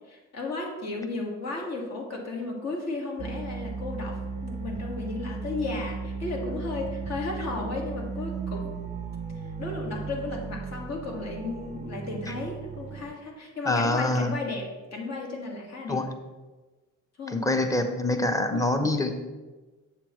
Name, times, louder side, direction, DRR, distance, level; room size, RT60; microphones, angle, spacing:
voice 1, 0.1-8.8 9.6-16.0 17.2-17.5, left 3 dB, 60° left, 0 dB, 1.9 m, -34 dB
sound 1, 3.2-13.1, right 4 dB, 25° right, 0.6 m, -36 dB
voice 2, 13.7-14.3 15.9-16.1 17.3-19.1, left 2 dB, 10° left, 6 dB, 0.8 m, -25 dB
7.9 x 6.8 x 3.1 m, 1.2 s
cardioid pair, 90°, 30 cm